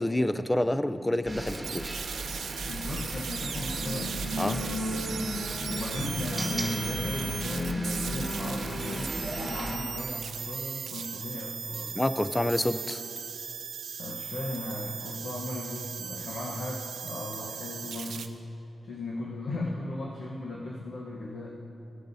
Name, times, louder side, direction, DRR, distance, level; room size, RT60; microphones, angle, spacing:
voice 1, 0.0-1.9 4.4-4.6 11.9-13.0, left 1 dB, 15° left, 12 dB, 0.4 m, -27 dB
sound 1, 1.2-9.8, right 2 dB, 25° right, 1.4 m, -37 dB
sound 2, 1.5-18.3, right 7 dB, 90° right, 0.5 m, -38 dB
voice 2, 2.4-4.1 4.4-5.2 5.7-12.0 14.0-18.3 18.8-21.6, left 2 dB, 75° left, -3 dB, 1.0 m, -37 dB
sound 3, 3.6-9.8, left 1 dB, 50° left, 2.3 m, -35 dB
17.5 x 9.2 x 2.7 m, 2.9 s
cardioid pair, 90°, 0 cm